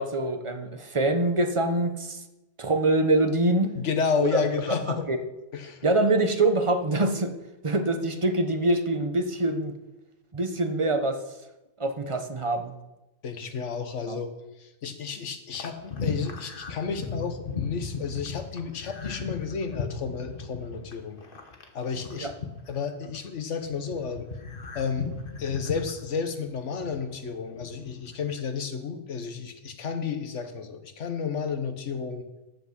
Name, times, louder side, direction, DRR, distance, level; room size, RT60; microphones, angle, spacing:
voice 1, 0.0-2.2 2.6-3.7 4.2-4.4 4.7-5.2 5.8-7.3 7.6-9.7 10.3-11.2 11.8-12.7 14.1-14.2 22.2-22.3, right 2 dB, 30° right, 7 dB, 0.9 m, -25 dB
voice 2, 3.8-5.1 5.5-5.9 13.2-14.3 14.6-21.2 21.7-22.3 22.7-24.2 24.7-25.1 25.4-32.2, left 6 dB, 80° left, 8 dB, 1.4 m, -31 dB
sound 1, 15.5-23.3 23.6-27.2 27.5-28.4, left 4 dB, 50° left, 1.4 m, -36 dB
14.0 x 6.0 x 6.0 m, 0.98 s
omnidirectional pair, 1.2 m